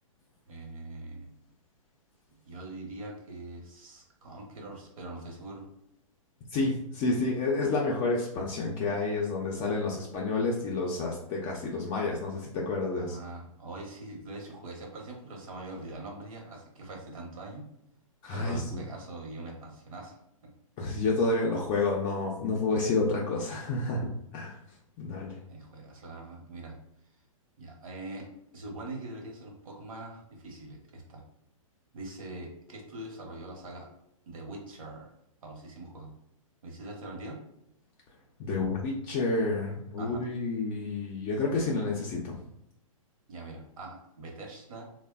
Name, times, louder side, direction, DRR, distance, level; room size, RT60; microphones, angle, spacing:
voice 1, 0.5-1.3 2.4-5.6 13.0-17.6 18.3-20.2 25.5-26.8 27.6-28.3 28.5-31.2 31.9-33.9 34.3-35.1 35.4-36.1 36.6-37.4 40.0-40.2 43.3-44.8, right 2 dB, 75° right, 0 dB, 0.9 m, -43 dB
voice 2, 6.5-13.2 18.2-18.8 20.8-24.5 25.0-25.4 38.4-42.4, left 3 dB, 30° left, -2 dB, 0.4 m, -29 dB
3.0 x 2.0 x 2.2 m, 0.79 s
hypercardioid pair, 130°, 18 cm